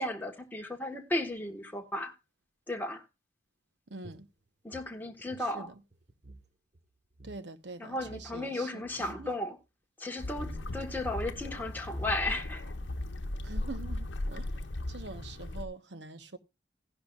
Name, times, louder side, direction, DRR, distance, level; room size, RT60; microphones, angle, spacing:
voice 1, 0.0-2.1 2.7-3.0 4.6-5.7 7.8-9.6 10.0-12.7, left 1 dB, 10° left, 1.3 m, -35 dB
voice 2, 3.9-4.3 5.5-5.7 7.2-9.3 13.4-14.5 14.9-16.4, right 3 dB, 70° right, 1.0 m, -44 dB
sound 1, 4.0-6.5 6.7-6.8 7.1-7.4 8.0-8.5 8.8-9.4 10.3-10.7 11.5-11.6 11.8-12.5, right 1 dB, 40° right, 1.4 m, -51 dB
sound 2, 10.2-15.7, left 1 dB, 85° left, 0.8 m, -37 dB
15.5 x 10.5 x 2.4 m
head